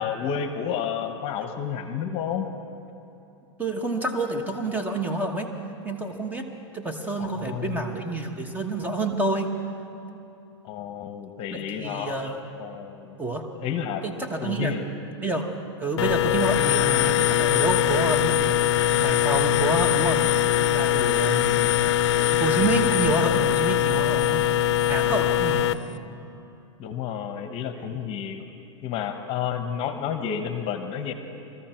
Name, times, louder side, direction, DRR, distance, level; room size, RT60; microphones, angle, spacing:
voice 1, 0.0-2.5 7.2-7.9 10.6-12.2 12.6-13.2 13.6-14.0 14.4-14.9 21.3-22.1 25.5-26.4 26.8-28.5 28.8-31.1, left 8 dB, 40° left, 7 dB, 1.1 m, -31 dB
voice 2, 3.6-5.5 5.8-9.6 11.8-12.4 13.2-13.4 14.0-14.7 15.2-15.5 15.8-18.6 18.9-20.2 20.6-21.5 22.3-24.4 24.9-25.7, right 2 dB, 10° right, 4 dB, 1.2 m, -28 dB
sound 1, 16.0-25.7, left 12 dB, 65° left, 0.5 m, -22 dB
22.5 x 14.0 x 4.5 m, 2.9 s
hypercardioid pair, 125°, 15 cm